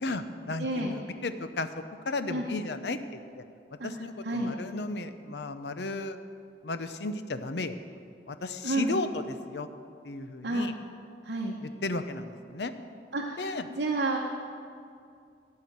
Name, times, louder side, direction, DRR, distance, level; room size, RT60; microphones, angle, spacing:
voice 1, 0.0-1.7 2.1-3.0 3.4-3.5 3.8-6.2 6.6-7.8 8.3-9.7 10.0-10.7 11.6-12.7 13.4-13.7, left 2 dB, 70° left, 10 dB, 0.7 m, -34 dB
voice 2, 0.6-0.9 2.3-2.4 3.8-3.9 4.2-4.5 8.6-9.0 10.4-10.7 11.2-11.5 13.1-14.2, right 2 dB, 65° right, -1 dB, 1.1 m, -30 dB
13.5 x 5.7 x 9.3 m, 2.4 s
head